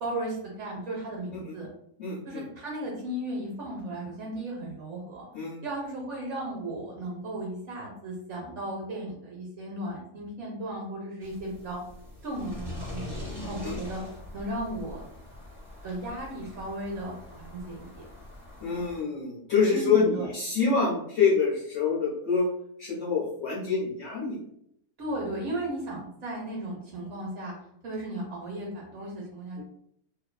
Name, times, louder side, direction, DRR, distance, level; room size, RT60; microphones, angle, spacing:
voice 1, 0.0-1.7 2.2-5.2 5.6-11.8 12.2-14.0 14.3-15.0 15.8-18.1 19.7-20.3 25.0-27.5 27.8-29.6, right 1 dB, 65° right, -2 dB, 0.8 m, -35 dB
voice 2, 2.0-2.5 5.3-5.6 13.6-13.7 18.6-22.5 22.8-24.4 29.6-29.7, left 5 dB, 60° left, -6 dB, 0.7 m, -26 dB
sound 1, 11.2-19.0, left 1 dB, 20° right, 1.0 m, -43 dB
2.5 x 2.3 x 2.2 m, 0.71 s
omnidirectional pair, 1.7 m